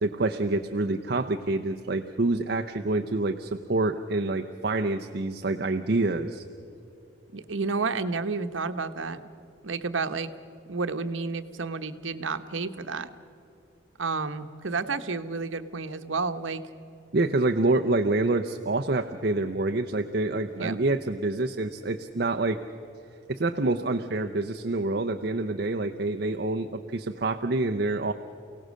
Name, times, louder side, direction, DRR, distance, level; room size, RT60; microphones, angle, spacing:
voice 1, 0.0-6.4 17.1-22.6 23.3-28.1, right 2 dB, 55° right, 5 dB, 0.7 m, -27 dB
voice 2, 7.3-9.2 9.6-10.3 10.7-13.1 14.0-16.6 20.5-20.8, right 4 dB, 85° right, 9 dB, 1.0 m, -31 dB
29.0 x 17.5 x 6.4 m, 2.9 s
head